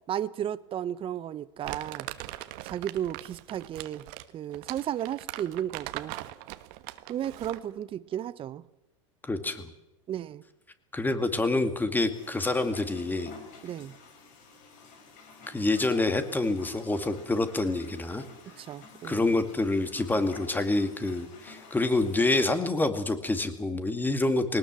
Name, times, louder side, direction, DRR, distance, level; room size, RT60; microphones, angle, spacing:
voice 1, 0.1-2.1 2.6-4.1 4.3-6.1 7.1-8.6 10.1-10.4 13.6-13.9 18.6-19.3, right 10 dB, 30° right, 0.8 m, -34 dB
Crumpling crinkling, 1.6-7.7, right 17 dB, 60° right, 1.3 m, -41 dB
voice 2, 9.2-9.7 10.9-13.3 15.5-18.2 19.0-24.6, left 2 dB, 10° left, 2.2 m, -27 dB
sound 1, 12.1-22.4, left 4 dB, 55° left, 5.4 m, -50 dB
20.5 x 19.0 x 7.6 m
hypercardioid pair, 100°, 17 cm